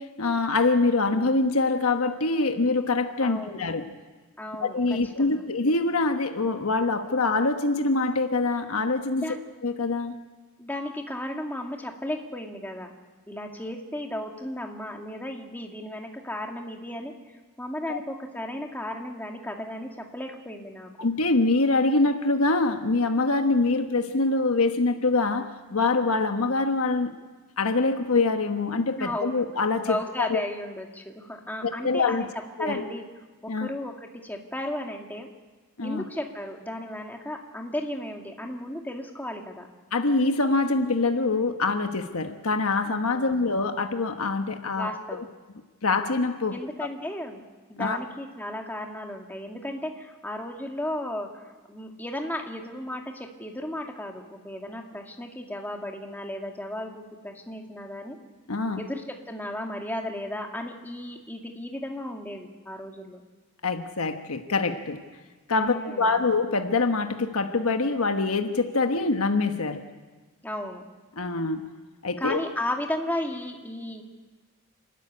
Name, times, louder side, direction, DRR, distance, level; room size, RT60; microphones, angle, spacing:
voice 1, 0.0-3.9 4.6-9.2 9.6-10.1 17.9-18.0 21.0-27.1 27.6-30.4 31.6-32.2 32.6-32.9 33.5-33.7 35.8-36.0 39.9-45.2 45.8-46.6 47.8-48.0 58.5-58.8 63.6-65.0 65.5-69.8 71.2-71.7 72.0-72.4, left 3 dB, 85° left, 6 dB, 1.2 m, -25 dB
voice 2, 3.2-3.7 4.4-5.4 9.2-9.4 10.6-12.9 13.3-20.9 29.0-29.3 29.9-32.3 32.6-33.0 33.4-35.3 35.8-39.7 43.1-43.4 44.7-45.2 46.5-47.4 47.7-58.2 58.8-63.2 65.5-66.2 70.4-70.8 72.2-74.0, left 1 dB, 10° left, 2 dB, 2.1 m, -34 dB
28.0 x 13.5 x 9.9 m, 1.3 s
head